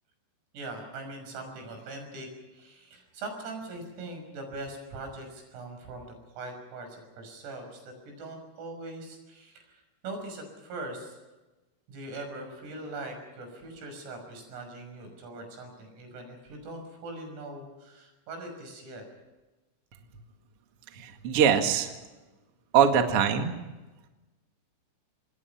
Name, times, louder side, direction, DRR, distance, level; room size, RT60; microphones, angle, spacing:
voice 1, 0.5-11.2 11.9-19.1, right 2 dB, 85° right, 5 dB, 8.7 m, -41 dB
voice 2, 21.0-21.9 22.7-23.5, right 8 dB, 60° right, 5 dB, 1.4 m, -22 dB
27.0 x 21.0 x 5.9 m, 1.1 s
omnidirectional pair, 6.0 m